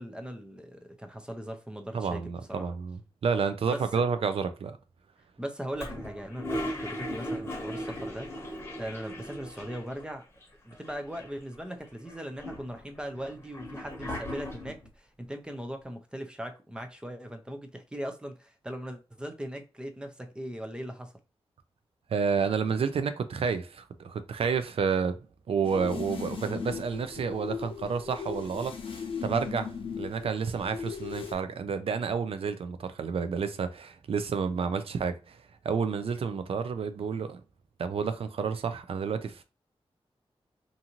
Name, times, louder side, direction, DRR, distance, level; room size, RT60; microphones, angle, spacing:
voice 1, 0.0-2.7 3.7-4.0 5.4-10.2 10.6-21.1, equal, 10° right, 0.5 m, -39 dB
voice 2, 1.9-4.8 22.1-25.2 25.5-35.4 35.6-37.4 37.8-39.4, right 5 dB, 70° right, 0.4 m, -30 dB
Toilet flush, 5.8-10.1 10.4-10.5 10.7-11.5 12.1-14.9, equal, 25° left, 1.0 m, -38 dB
sound 1, 25.6-31.3, left 6 dB, 60° left, 0.6 m, -38 dB
2.6 x 2.5 x 2.9 m
wide cardioid pair, 110°, 10 cm